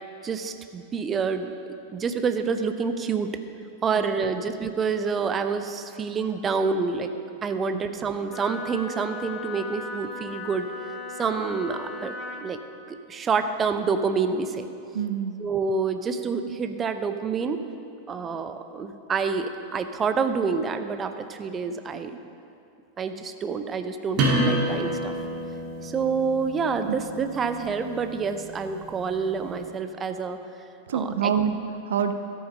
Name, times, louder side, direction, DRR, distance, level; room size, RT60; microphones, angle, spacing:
voice 1, 0.2-1.6 1.9-3.3 3.8-7.1 7.4-10.7 11.2-12.6 12.9-14.7 15.4-17.6 18.1-22.2 23.0-25.1 25.8-30.4 30.9-31.3, right 5 dB, 20° right, 9 dB, 0.7 m, -27 dB
Wind instrument woodwind instrument, 8.3-12.5, left 4 dB, 35° left, 1.0 m, -37 dB
voice 2, 14.9-15.4 26.9-27.0 30.9-32.1, right 7 dB, 60° right, 7 dB, 0.8 m, -26 dB
sound 1, 24.2-29.6, right 1 dB, 40° right, 2.5 m, -30 dB
14.0 x 8.7 x 5.4 m, 2.6 s
figure-of-eight pair, 90°, 0 cm